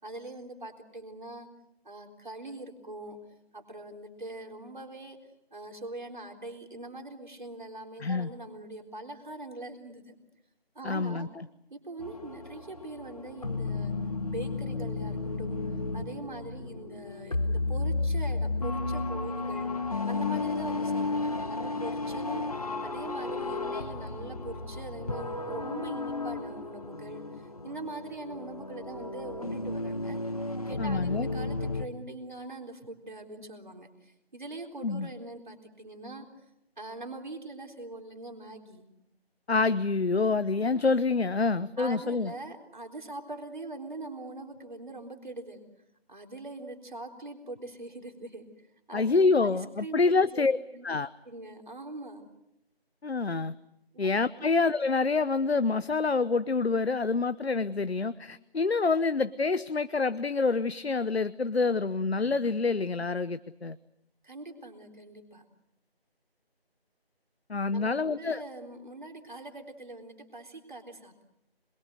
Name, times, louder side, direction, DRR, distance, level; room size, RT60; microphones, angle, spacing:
voice 1, 0.0-1.5 1.8-3.2 3.5-5.2 5.5-10.1 10.7-11.3 11.7-13.9 14.3-19.7 20.1-30.2 30.7-36.5 36.8-38.9 41.8-45.6 46.1-50.9 51.3-52.3 53.9-54.1 54.4-54.5 64.2-65.5 67.7-71.2, right 2 dB, 50° right, 3 dB, 3.9 m, -42 dB
voice 2, 10.8-11.4 30.8-31.3 34.8-35.1 39.5-42.3 48.9-50.6 50.8-51.1 53.0-53.5 54.0-63.8 67.5-68.4, left 4 dB, 80° left, 14 dB, 1.0 m, -27 dB
sound 1, 12.0-31.9, left 3 dB, 35° left, 1.6 m, -33 dB
26.5 x 23.0 x 7.9 m, 0.82 s
figure-of-eight pair, 175°, 31 cm